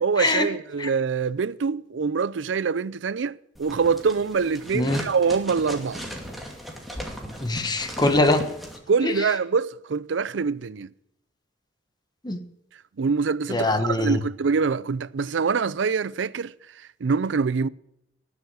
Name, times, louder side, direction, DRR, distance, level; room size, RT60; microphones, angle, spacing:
voice 1, 0.0-6.1 8.9-10.9 13.0-16.5 17.0-17.7, right 5 dB, 80° right, 0.5 m, -25 dB
sound 1, 3.5-8.8, equal, ahead, 2.3 m, -37 dB
voice 2, 7.4-8.4 9.0-9.1 12.2-12.4 13.5-14.2, left 2 dB, 25° left, 1.2 m, -22 dB
19.0 x 7.2 x 6.3 m
head